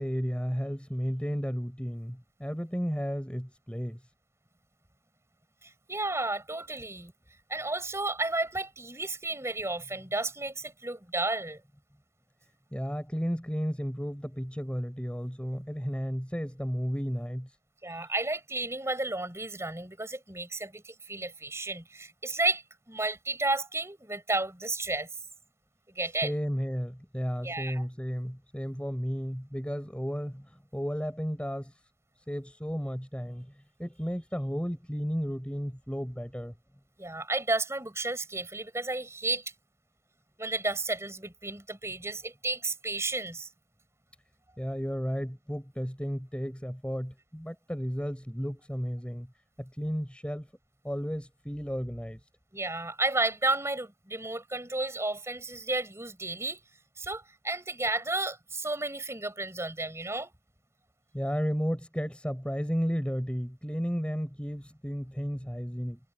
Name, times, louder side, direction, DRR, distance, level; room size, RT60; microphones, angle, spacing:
voice 1, 0.0-4.0 12.7-17.5 26.2-31.7 32.3-36.5 44.6-49.3 49.6-50.5 50.8-52.2 61.1-66.0, equal, 5° left, 4.5 m, -33 dB
voice 2, 5.6-7.1 7.5-11.6 17.8-25.1 25.9-26.3 27.4-27.8 37.0-39.5 40.4-43.5 52.5-56.6 57.0-60.3, right 2 dB, 15° right, 6.7 m, -32 dB
head